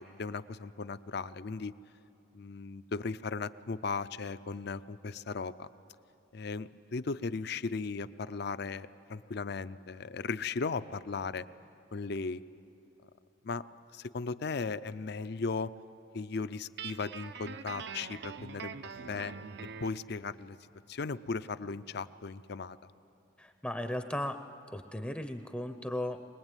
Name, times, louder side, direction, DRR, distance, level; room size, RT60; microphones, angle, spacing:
voice 1, 0.0-1.7 2.3-5.7 6.3-11.5 11.9-12.4 13.4-13.6 13.9-15.7 16.1-18.8 19.1-19.3 19.8-20.6 20.9-22.8, left 4 dB, 55° left, 14 dB, 0.6 m, -37 dB
Guitar, 16.8-20.0, right 6 dB, 60° right, 0.6 m, -43 dB
voice 2, 23.4-24.4 24.7-26.2, left 1 dB, 5° left, 7 dB, 0.6 m, -36 dB
23.5 x 20.0 x 9.1 m, 2.7 s
head